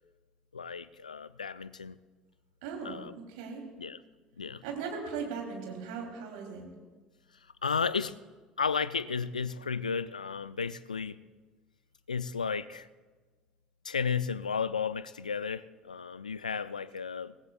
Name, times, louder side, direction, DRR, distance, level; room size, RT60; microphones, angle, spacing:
voice 1, 0.5-2.0 2.8-3.1 3.8-4.0 4.4-4.6 7.6-8.2 8.6-11.2 12.1-12.9 13.8-17.3, left 6 dB, 85° left, 17 dB, 0.4 m, -33 dB
voice 2, 2.6-3.6 4.6-6.6, right 5 dB, 65° right, 0 dB, 3.1 m, -38 dB
23.5 x 18.0 x 2.4 m, 1.3 s
figure-of-eight pair, 60°, 4 cm